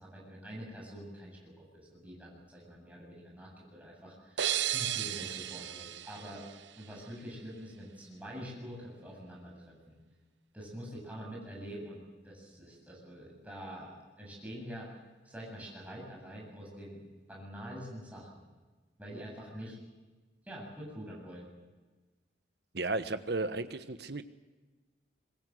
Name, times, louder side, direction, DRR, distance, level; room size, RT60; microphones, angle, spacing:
voice 1, 0.0-6.4 6.8-10.0 10.5-14.9 15.2-17.0 17.3-18.4 19.0-19.8 20.4-21.5, equal, 10° right, -4 dB, 7.8 m, -46 dB
sound 1, 4.4-7.1, right 11 dB, 75° right, 0.9 m, -35 dB
voice 2, 22.7-24.2, right 2 dB, 60° right, 10 dB, 1.3 m, -34 dB
23.5 x 21.5 x 8.0 m, 1.3 s
head